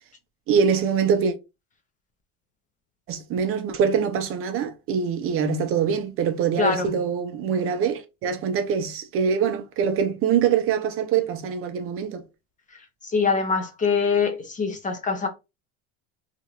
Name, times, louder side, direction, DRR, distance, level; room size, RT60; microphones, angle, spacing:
voice 1, 0.5-1.3 3.1-12.2, right 7 dB, 35° right, 0.4 m, -24 dB
voice 2, 6.6-6.9 13.0-15.3, left 5 dB, 20° left, 0.4 m, -23 dB
2.8 x 2.5 x 2.8 m
supercardioid pair, 125°, 38 cm